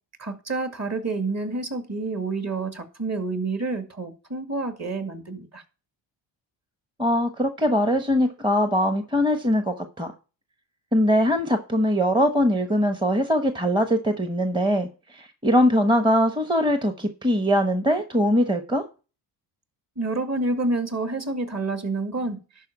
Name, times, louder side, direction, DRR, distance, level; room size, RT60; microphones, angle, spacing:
voice 1, 0.2-5.6 20.0-22.4, right 3 dB, 35° right, 2.2 m, -28 dB
voice 2, 7.0-10.1 10.9-18.8, equal, 10° right, 1.0 m, -22 dB
11.5 x 4.5 x 7.3 m
cardioid pair, 95°, 46 cm